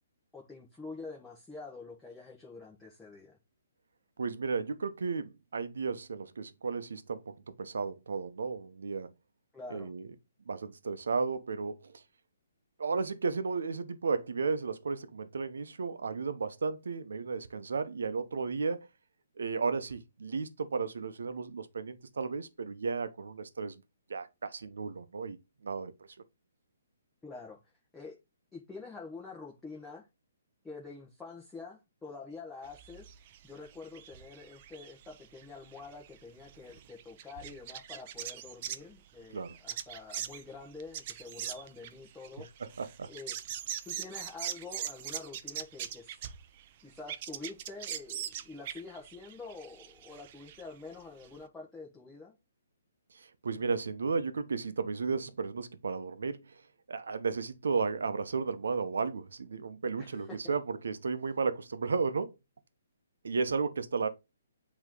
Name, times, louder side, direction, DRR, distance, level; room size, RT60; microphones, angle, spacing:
voice 1, 0.3-3.3 9.5-9.9 27.2-27.6 27.9-28.2 28.5-30.1 30.6-33.1 33.4-42.5 43.1-43.3 43.8-46.2 46.8-52.3 60.0-60.6, left 4 dB, 5° left, 1.3 m, -47 dB
voice 2, 4.2-9.1 9.7-10.1 10.5-12.0 12.8-18.9 19.4-23.8 24.1-25.4 25.6-25.9 39.3-39.6 42.8-43.1 53.1-56.6 56.9-62.3 63.2-64.1, right 4 dB, 80° right, 0.9 m, -34 dB
sound 1, 32.6-38.9 39.4-46.7 47.0-50.6 50.9-51.0 51.2-51.3, right 10 dB, 35° right, 0.6 m, -41 dB
8.2 x 3.2 x 3.8 m
hypercardioid pair, 150°, 0 cm